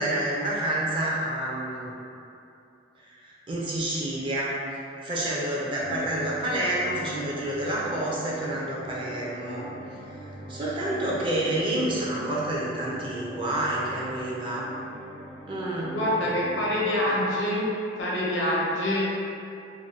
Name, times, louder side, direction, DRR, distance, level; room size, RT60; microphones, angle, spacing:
voice 1, 0.0-1.9 3.1-4.5 5.0-9.6 10.5-14.7 15.5-16.0, right 1 dB, 25° right, -6 dB, 0.4 m, -28 dB
sound 1, 5.8-17.7, right 1 dB, 85° right, 0.7 m, -42 dB
voice 2, 15.9-17.7 18.0-19.0, left 1 dB, 90° left, -6 dB, 0.7 m, -25 dB
2.6 x 2.1 x 3.2 m, 2.7 s
head